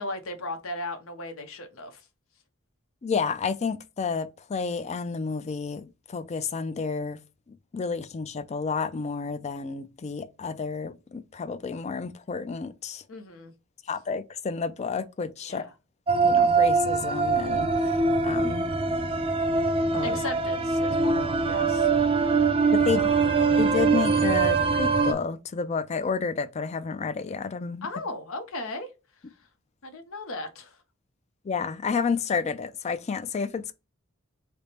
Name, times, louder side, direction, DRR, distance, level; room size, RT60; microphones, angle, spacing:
voice 1, 0.0-2.0 13.1-13.5 15.5-15.7 20.0-22.5 22.8-23.1 27.8-28.9 29.8-30.8, left 2 dB, 80° left, 0.8 m, -37 dB
voice 2, 3.0-7.2 7.5-13.0 13.9-15.7 16.2-18.7 19.9-20.2 22.9-23.1 23.6-27.9 31.4-33.7, left 5 dB, 35° left, 0.4 m, -30 dB
sound 1, 16.1-25.1, right 4 dB, 25° right, 0.5 m, -23 dB
3.4 x 2.0 x 4.2 m
head